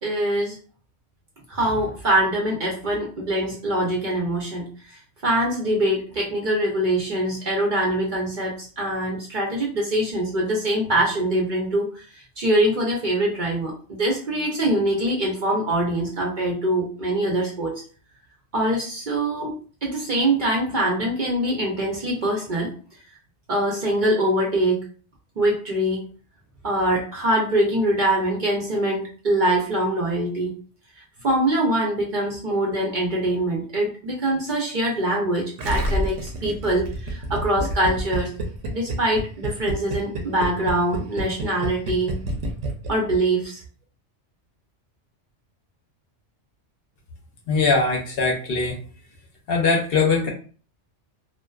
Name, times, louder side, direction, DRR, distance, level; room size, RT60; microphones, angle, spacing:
voice 1, 0.0-0.6 1.5-4.7 5.2-12.1 12.4-17.8 18.5-19.5 19.8-22.7 23.5-24.9 25.4-26.0 26.6-30.5 31.2-38.3 38.7-42.2 42.9-43.6, right 1 dB, 55° right, -2 dB, 0.6 m, -23 dB
Gurgling, 35.6-43.2 43.4-43.5, right 1 dB, 80° right, 0.9 m, -28 dB
voice 2, 47.5-48.8 49.5-50.3, left 4 dB, 60° left, 0 dB, 0.7 m, -21 dB
2.5 x 2.1 x 2.3 m, 0.40 s
omnidirectional pair, 1.2 m